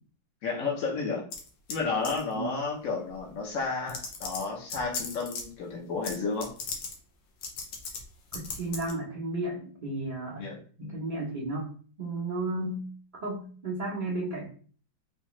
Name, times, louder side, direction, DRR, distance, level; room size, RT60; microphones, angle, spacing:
voice 1, 0.4-1.2 1.7-6.5 10.4-11.1, left 4 dB, 55° left, -3 dB, 1.0 m, -32 dB
sound 1, 1.3-1.8 2.0-2.3 3.3-3.4 3.9-5.4 6.0-6.2 6.4-6.9 7.4-8.0 8.3-8.9, left 5 dB, 85° left, 1.5 m, -36 dB
voice 2, 8.3-10.5 10.8-11.7 12.0-12.9 13.1-14.5, right 2 dB, 50° right, -7 dB, 0.5 m, -33 dB
4.4 x 2.4 x 3.0 m, 0.43 s
omnidirectional pair, 2.0 m